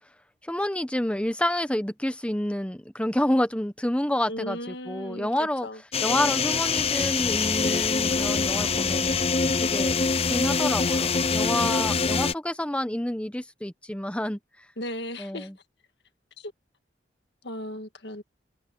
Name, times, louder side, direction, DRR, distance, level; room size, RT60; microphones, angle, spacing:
voice 1, 0.4-5.7 6.0-10.0 10.3-14.4 15.2-15.5, left 1 dB, 5° left, 1.0 m, -28 dB
voice 2, 4.3-6.3 11.6-12.3 14.8-15.5 16.4-16.5 17.4-18.2, left 1 dB, 70° left, 1.8 m, -37 dB
sound 1, 5.9-12.3, left 5 dB, 35° left, 0.7 m, -24 dB
head